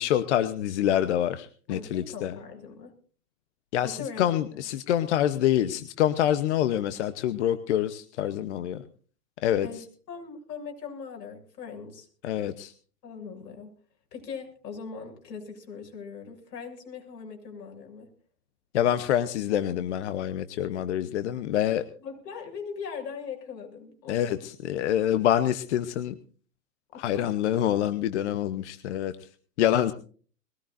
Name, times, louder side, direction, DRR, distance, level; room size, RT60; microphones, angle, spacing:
voice 1, 0.0-2.4 3.7-8.8 9.4-9.8 12.2-12.7 18.7-21.8 24.1-26.1 26.9-29.1 29.6-29.9, left 11 dB, 45° left, 11 dB, 1.0 m, -26 dB
voice 2, 1.7-3.0 3.8-4.2 9.6-12.1 13.0-13.7 14.1-18.1 22.0-24.5 26.9-27.3, left 6 dB, 70° left, 2 dB, 7.0 m, -40 dB
22.0 x 18.5 x 2.6 m, 0.42 s
hypercardioid pair, 145°, 50 cm